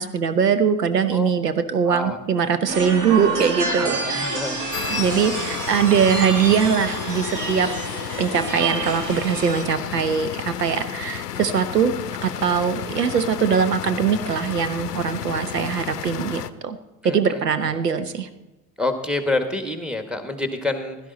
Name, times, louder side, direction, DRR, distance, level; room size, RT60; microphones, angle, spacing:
voice 1, 0.0-4.4 4.9-7.7 8.2-11.9 12.2-16.8 17.0-18.3, right 7 dB, 85° right, 12 dB, 0.9 m, -21 dB
voice 2, 1.9-2.2 3.7-4.6 17.0-17.4 18.8-21.0, left 2 dB, ahead, 7 dB, 1.6 m, -27 dB
sound 1, 2.7-9.6, right 3 dB, 40° right, 2.3 m, -28 dB
sound 2, 4.7-16.5, left 10 dB, 85° left, 0.6 m, -32 dB
16.0 x 12.0 x 4.1 m, 1.1 s
figure-of-eight pair, 60°, 47 cm